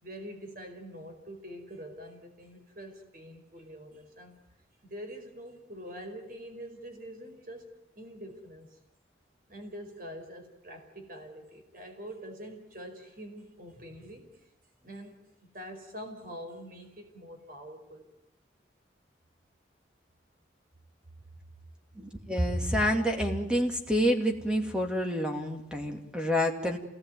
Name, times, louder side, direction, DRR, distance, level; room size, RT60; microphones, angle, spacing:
voice 1, 0.0-4.4 4.8-8.8 9.5-14.4 14.8-18.1, equal, 50° right, 5 dB, 5.1 m, -45 dB
voice 2, 22.0-26.8, equal, 5° right, 3 dB, 2.6 m, -28 dB
28.0 x 19.5 x 9.3 m, 0.82 s
head